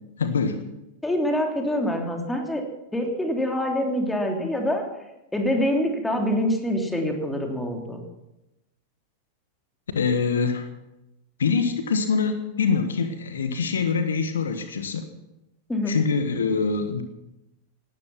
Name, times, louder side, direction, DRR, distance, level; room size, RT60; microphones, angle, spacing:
voice 1, 0.2-0.7 9.9-10.7 11.4-15.1 15.9-17.0, left 5 dB, 70° left, 9 dB, 1.4 m, -24 dB
voice 2, 1.0-2.6 2.9-4.8 5.3-8.0 15.7-16.0, left 1 dB, 5° left, 2 dB, 3.1 m, -25 dB
18.0 x 12.5 x 5.9 m, 0.93 s
figure-of-eight pair, 90°, 0 cm